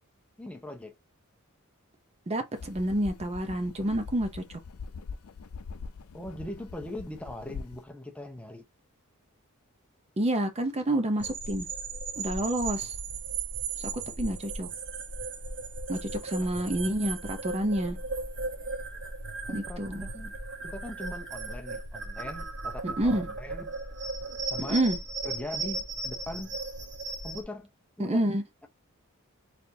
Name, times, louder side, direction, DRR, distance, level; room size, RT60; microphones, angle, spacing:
voice 1, 0.4-0.9 6.1-8.6 19.5-20.3 20.6-23.8 24.5-24.8 25.2-26.6 27.2-27.7 28.0-28.2, left 1 dB, 5° left, 0.7 m, -40 dB
voice 2, 2.3-4.4 10.2-11.7 12.2-13.0 13.8-13.9 14.2-14.7 15.9-18.0 19.5-20.1 22.8-23.3 24.6-25.0 28.0-28.4, right 1 dB, 30° right, 0.6 m, -28 dB
sound 1, 2.5-7.8, left 5 dB, 75° left, 0.4 m, -42 dB
sound 2, 11.2-27.4, right 3 dB, 55° right, 1.0 m, -36 dB
4.3 x 3.4 x 2.7 m
head